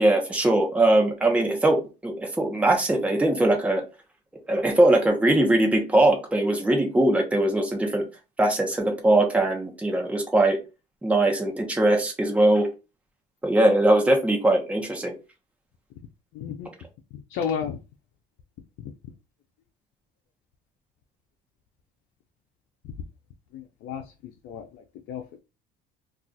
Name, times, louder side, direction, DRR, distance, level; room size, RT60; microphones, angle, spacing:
voice 1, 0.0-3.8 4.5-8.0 8.4-10.6 11.0-12.7 13.4-15.1, right 1 dB, 5° right, 0.8 m, -21 dB
voice 2, 16.3-16.7 17.3-17.8 23.5-25.4, left 7 dB, 70° left, 0.5 m, -33 dB
2.3 x 2.3 x 3.9 m
cardioid pair, 125°, 19 cm